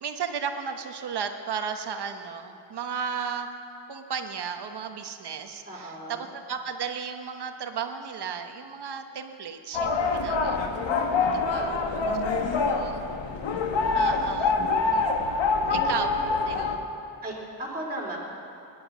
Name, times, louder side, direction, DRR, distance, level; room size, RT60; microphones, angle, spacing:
voice 1, 0.0-3.5 3.9-10.6 11.3-12.2 12.6-13.0 13.9-14.6 14.9-15.1 15.7-16.1 16.5-16.8, right 6 dB, 60° right, 6 dB, 1.2 m, -34 dB
voice 2, 5.7-6.3 10.0-12.5 15.6-15.9 17.2-18.2, right 1 dB, 20° right, -3 dB, 3.7 m, -39 dB
sound 1, 9.7-16.8, left 4 dB, 80° left, 1.5 m, -25 dB
18.5 x 11.0 x 6.1 m, 2.7 s
cardioid pair, 115°, 44 cm